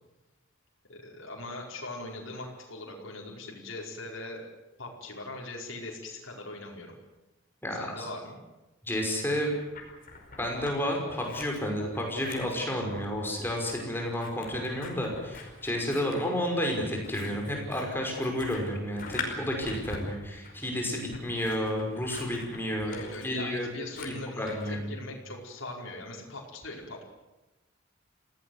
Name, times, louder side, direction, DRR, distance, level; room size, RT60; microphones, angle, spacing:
voice 1, 0.9-4.4 4.8-6.9 7.7-8.4 22.8-27.0, left 2 dB, 75° left, -1 dB, 5.1 m, -40 dB
voice 2, 7.6-8.1 8.8-9.5 10.4-22.9 23.2-23.7 24.0-24.9, equal, 10° left, 1 dB, 5.7 m, -31 dB
Scissors, 9.2-10.8 11.1-24.7, left 3 dB, 45° left, 5.1 m, -44 dB
27.0 x 17.5 x 8.1 m, 1.0 s
head